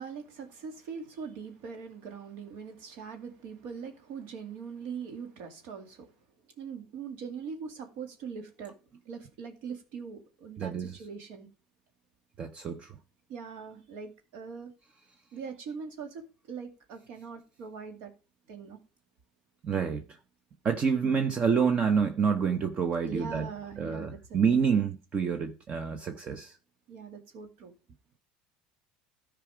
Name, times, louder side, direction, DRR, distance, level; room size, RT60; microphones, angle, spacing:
voice 1, 0.0-6.1 6.6-8.7 9.1-11.5 13.3-14.7 15.3-18.1 18.5-18.8 21.0-21.2 23.0-24.8 26.9-27.7, right 6 dB, 70° right, 2.3 m, -42 dB
voice 2, 10.6-10.9 12.4-12.9 19.6-20.2 20.6-23.5 23.8-26.6, right 6 dB, 40° right, 0.9 m, -28 dB
13.0 x 4.9 x 5.0 m
supercardioid pair, 100°, 3 cm